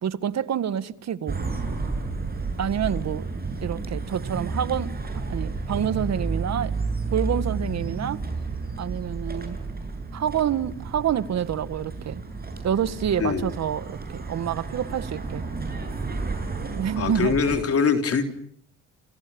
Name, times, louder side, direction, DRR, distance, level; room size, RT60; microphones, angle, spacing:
voice 1, 0.0-1.4 2.6-3.3 3.6-4.9 5.3-6.7 7.1-8.2 8.8-9.6 10.1-12.2 12.6-15.4 16.8-17.3, right 9 dB, 60° right, 1.7 m, -27 dB
sound 1, 1.3-17.6, right 3 dB, 30° right, 7.9 m, -31 dB
voice 2, 13.2-13.5 17.0-18.2, left 5 dB, 50° left, 3.6 m, -23 dB
28.5 x 28.5 x 7.0 m
cardioid pair, 90°, 30 cm